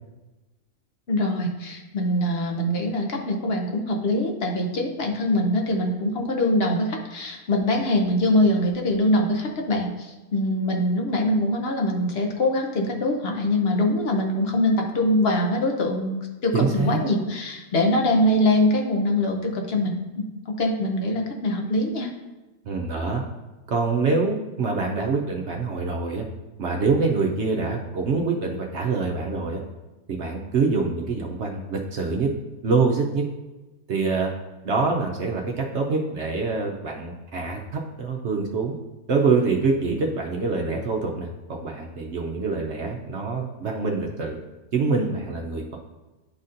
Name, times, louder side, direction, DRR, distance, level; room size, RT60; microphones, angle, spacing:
voice 1, 1.1-22.1, left 1 dB, 50° left, 2 dB, 1.0 m, -23 dB
voice 2, 16.5-17.0 22.6-23.2 23.7-26.2 26.6-29.6 30.1-32.3 32.6-33.2 33.9-34.3 34.6-38.7 39.1-44.4 44.7-45.8, right 4 dB, 60° right, 0 dB, 0.8 m, -25 dB
11.0 x 4.1 x 2.5 m, 1.1 s
omnidirectional pair, 1.5 m